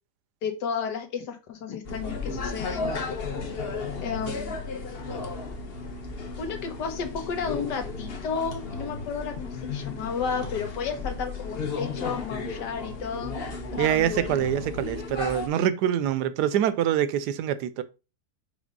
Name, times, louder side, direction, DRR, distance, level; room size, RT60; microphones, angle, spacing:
voice 1, 0.4-2.9 4.0-4.5 5.1-5.2 6.4-13.3 13.8-14.4, left 6 dB, 85° left, 1.8 m, -32 dB
sound 1, 1.8-15.5, left 4 dB, 45° left, 1.0 m, -34 dB
voice 2, 13.8-17.8, right 10 dB, 80° right, 1.2 m, -25 dB
5.1 x 3.5 x 5.2 m
omnidirectional pair, 1.8 m